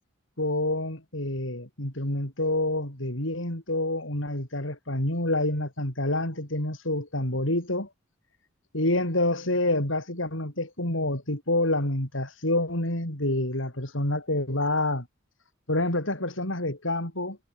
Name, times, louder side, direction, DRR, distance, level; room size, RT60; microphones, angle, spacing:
voice 1, 0.4-7.9 8.7-15.1 15.7-17.4, left 1 dB, 75° left, 6.9 m, -27 dB
head